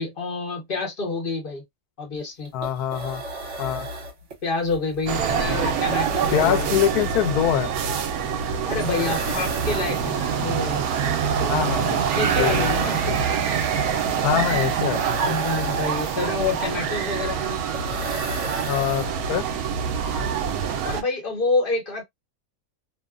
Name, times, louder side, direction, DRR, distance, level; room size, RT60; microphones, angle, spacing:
voice 1, 0.0-1.6 2.0-2.5 4.4-6.8 8.6-11.1 11.4-13.0 15.3-17.6 20.8-22.0, left 3 dB, 40° left, 1.1 m, -28 dB
sound 1, 2.1-2.2 2.4-19.5, right 1 dB, 55° right, 1.1 m, -36 dB
voice 2, 2.5-3.2 3.6-3.9 6.3-7.7 11.5-12.0 12.4-12.7 13.1-13.2 14.2-15.4 18.6-19.5, left 10 dB, 75° left, 1.1 m, -24 dB
sound 2, 5.1-21.0, right 7 dB, 75° right, 1.0 m, -25 dB
2.7 x 2.1 x 2.3 m
omnidirectional pair, 1.6 m